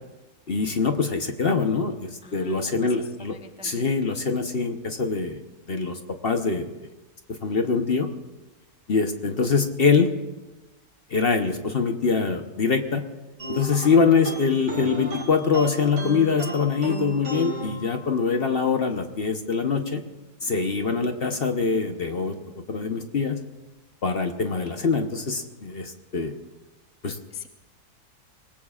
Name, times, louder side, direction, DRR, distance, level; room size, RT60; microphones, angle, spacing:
voice 1, 0.5-3.3 3.6-5.4 5.7-6.7 7.4-8.1 8.9-10.1 11.1-13.0 13.5-20.0 20.4-23.4 24.0-26.3 27.0-27.2, left 5 dB, 45° left, 5 dB, 0.9 m, -24 dB
voice 2, 2.2-3.9 27.3-27.5, left 6 dB, 5° right, 5 dB, 0.5 m, -44 dB
sound 1, 13.4-18.5, equal, 45° right, 2.8 m, -34 dB
24.5 x 19.0 x 2.4 m, 1.1 s
omnidirectional pair, 1.7 m